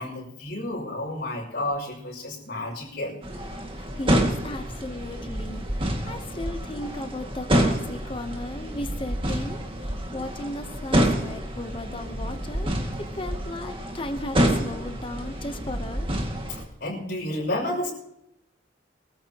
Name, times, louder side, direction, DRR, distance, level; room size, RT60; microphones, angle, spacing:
voice 1, 0.0-3.2 16.8-17.9, left 1 dB, 55° left, -1 dB, 6.1 m, -31 dB
sound 1, 3.2-16.6, equal, 30° right, 2.0 m, -28 dB
voice 2, 3.8-12.7 13.1-16.1, left 1 dB, 30° left, 7 dB, 0.9 m, -36 dB
23.5 x 14.0 x 2.9 m, 0.82 s
head